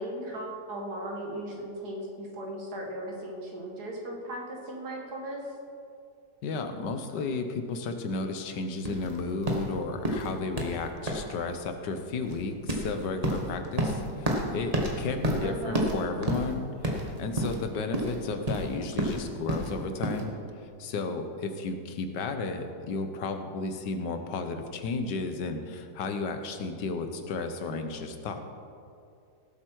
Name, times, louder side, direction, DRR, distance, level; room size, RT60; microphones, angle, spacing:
voice 1, 0.0-5.4 15.4-15.9, right 1 dB, 65° right, -1 dB, 2.4 m, -37 dB
voice 2, 6.4-28.5, left 3 dB, 85° left, 7 dB, 1.6 m, -33 dB
sound 1, 8.8-20.2, right 1 dB, 25° right, 1.4 m, -31 dB
17.5 x 7.8 x 4.6 m, 2.5 s
omnidirectional pair, 1.8 m